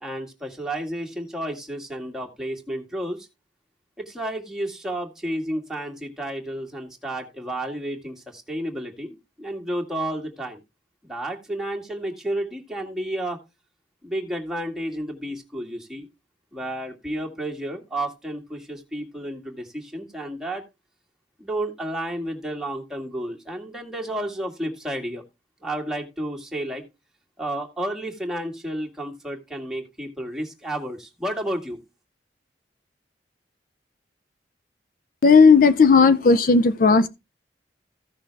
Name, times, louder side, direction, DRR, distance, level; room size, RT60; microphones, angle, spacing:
voice 1, 0.0-3.3 4.0-10.6 11.0-13.4 14.0-16.1 16.5-20.6 21.4-25.2 25.6-26.8 27.4-31.8, right 1 dB, 5° right, 1.8 m, -31 dB
voice 2, 35.2-37.1, left 4 dB, 50° left, 0.5 m, -14 dB
15.0 x 6.1 x 3.3 m
head